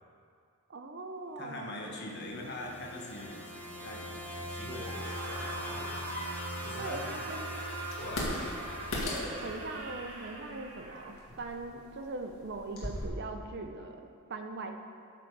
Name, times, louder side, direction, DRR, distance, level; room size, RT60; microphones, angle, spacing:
voice 1, 0.7-1.8 6.8-7.6 9.3-14.7, right 3 dB, 50° right, 5 dB, 0.7 m, -41 dB
voice 2, 1.4-3.5 3.8-5.9 6.6-7.3 8.0-8.8, left 1 dB, 50° left, -1 dB, 1.4 m, -43 dB
sound 1, 2.0-10.1, equal, 10° left, 0.8 m, -42 dB
Screaming, 4.7-11.2, right 2 dB, 80° right, 2.0 m, -42 dB
sound 2, 7.9-13.1, left 1 dB, 70° left, 1.9 m, -39 dB
13.0 x 6.1 x 4.7 m, 2.4 s
head